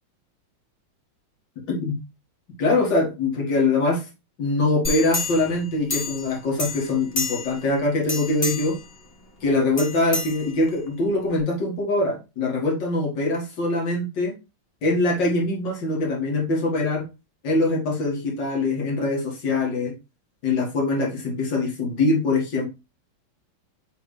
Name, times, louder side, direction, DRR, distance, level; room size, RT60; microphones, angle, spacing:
voice 1, 1.7-2.0 2.6-4.1 4.4-8.8 9.4-14.4 14.8-17.1 17.4-20.0 20.4-22.7, left 2 dB, 60° left, -1 dB, 2.5 m, -23 dB
sound 1, 4.8-6.3 6.6-7.7 8.0-8.8 9.8-10.9 11.4-11.5, left 3 dB, 35° left, 1.2 m, -29 dB
9.1 x 3.5 x 3.3 m, 0.26 s
omnidirectional pair, 2.2 m